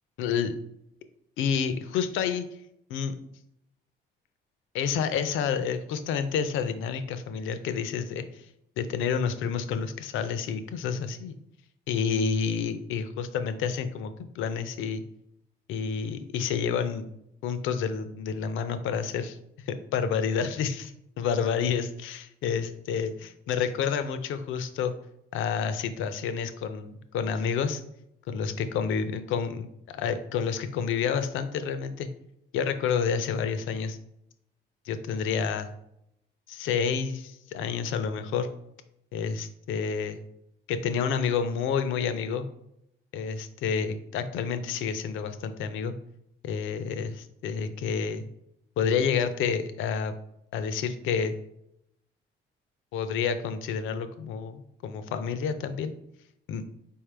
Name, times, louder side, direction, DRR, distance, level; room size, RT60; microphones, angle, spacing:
voice 1, 0.2-0.6 1.4-2.5 2.9-3.1 4.7-8.5 8.8-11.4 11.9-15.0 15.7-17.1 17.4-19.4 19.7-24.9 25.3-27.8 28.3-32.1 32.5-34.0 34.9-35.7 36.5-38.5 39.1-40.2 40.7-42.5 43.1-45.9 46.4-48.3 48.8-50.1 50.5-51.3 52.9-55.9 56.5-56.7, left 6 dB, 85° left, 10 dB, 0.5 m, -29 dB
4.2 x 3.6 x 3.3 m, 0.76 s
cardioid pair, 90°, 20 cm